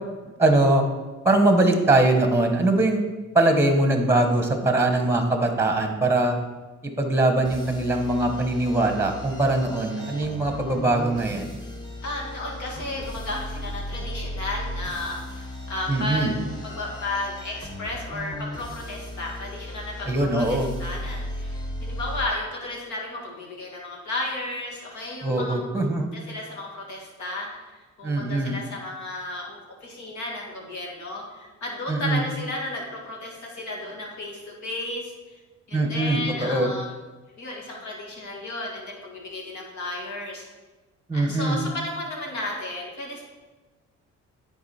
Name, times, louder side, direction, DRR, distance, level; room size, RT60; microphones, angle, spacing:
voice 1, 0.4-0.8 1.2-3.0 3.3-6.4 7.0-11.6 15.9-16.3 20.0-20.7 25.2-26.1 28.0-28.6 31.9-32.2 35.7-36.7 41.1-41.6, right 2 dB, 10° right, 5 dB, 1.1 m, -22 dB
sound 1, 7.4-22.3, left 1 dB, 15° left, 1.3 m, -36 dB
voice 2, 12.0-16.4 16.6-20.1 20.4-25.9 26.1-27.5 27.7-35.1 35.7-36.9 37.4-40.4 41.1-43.2, left 2 dB, 70° left, -1 dB, 2.1 m, -33 dB
9.5 x 4.0 x 4.2 m, 1.2 s
cardioid pair, 90°, 30 cm